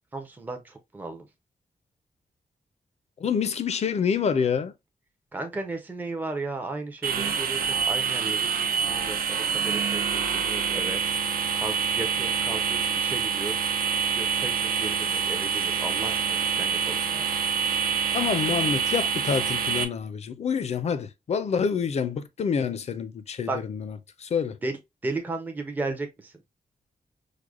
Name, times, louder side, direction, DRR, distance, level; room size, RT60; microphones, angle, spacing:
voice 1, 0.1-1.2 5.3-9.4 9.6-11.0 11.6-13.6 14.1-17.2 23.5-23.6 24.6-26.3, right 2 dB, 10° right, 0.4 m, -35 dB
voice 2, 3.2-4.7 18.1-24.6, left 6 dB, 45° left, 0.4 m, -27 dB
sound 1, 7.0-19.8, right 7 dB, 80° right, 0.5 m, -26 dB
4.7 x 2.1 x 2.3 m
wide cardioid pair, 165°, 15 cm